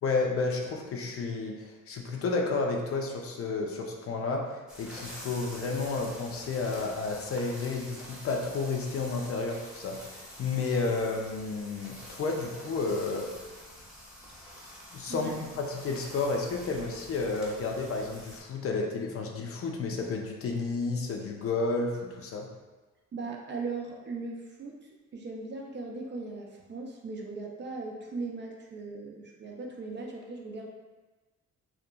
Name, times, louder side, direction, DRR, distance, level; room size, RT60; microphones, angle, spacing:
voice 1, 0.0-13.3 14.9-22.5, left 3 dB, 50° left, 1 dB, 0.4 m, -31 dB
sound 1, 4.7-18.4, equal, ahead, 0.8 m, -47 dB
voice 2, 23.1-30.7, right 3 dB, 35° right, 0 dB, 0.4 m, -38 dB
2.7 x 2.4 x 2.2 m, 1.2 s
cardioid pair, 90°, 30 cm